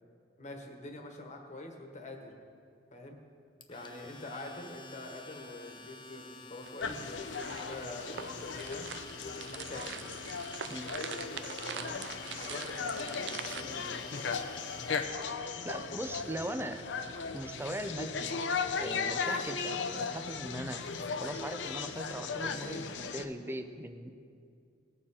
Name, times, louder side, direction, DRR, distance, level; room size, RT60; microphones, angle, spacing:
voice 1, 0.4-2.3 2.9-3.2 3.7-8.9 9.2-9.9 11.7-12.0 12.4-14.3, left 2 dB, 40° left, 3 dB, 1.4 m, -45 dB
Domestic sounds home sounds, 3.6-15.2, left 3 dB, 25° left, 0.6 m, -51 dB
sound 1, 6.6-13.6, right 7 dB, 70° right, 0.5 m, -44 dB
sound 2, 6.8-23.3, left 5 dB, 85° left, 0.7 m, -37 dB
voice 2, 15.6-16.8 17.3-18.4 18.8-20.8 21.2-24.1, right 1 dB, 15° right, 8 dB, 0.5 m, -39 dB
19.0 x 6.7 x 4.3 m, 2.3 s
head